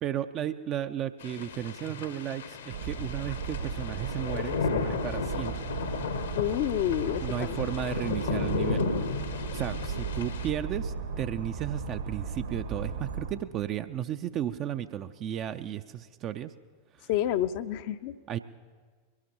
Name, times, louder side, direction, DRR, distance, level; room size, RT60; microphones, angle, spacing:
voice 1, 0.0-5.7 7.2-16.5 17.0-17.1 18.3-18.4, right 11 dB, 35° right, 10 dB, 0.4 m, -34 dB
sound 1, 1.2-10.5, left 5 dB, 65° left, 0.9 m, -34 dB
sound 2, 2.7-13.3, right 5 dB, 65° right, 1.5 m, -36 dB
voice 2, 6.3-7.6 17.1-18.1, left 12 dB, 45° left, 10 dB, 0.5 m, -29 dB
22.5 x 17.5 x 2.9 m, 1.5 s
figure-of-eight pair, 90°, 0 cm